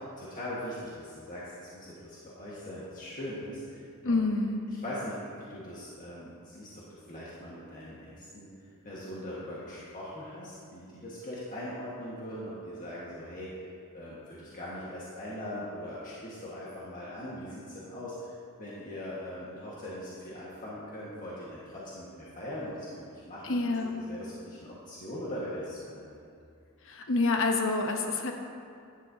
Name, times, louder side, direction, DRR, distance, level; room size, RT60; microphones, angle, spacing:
voice 1, 0.2-4.2 4.8-6.8 7.1-8.5 8.8-13.5 13.9-18.3 18.6-26.2, left 1 dB, 40° left, -8 dB, 1.6 m, -41 dB
voice 2, 4.0-4.6 23.4-24.0 26.8-28.3, left 3 dB, 65° left, 3 dB, 0.9 m, -27 dB
11.0 x 11.0 x 2.8 m, 2.4 s
head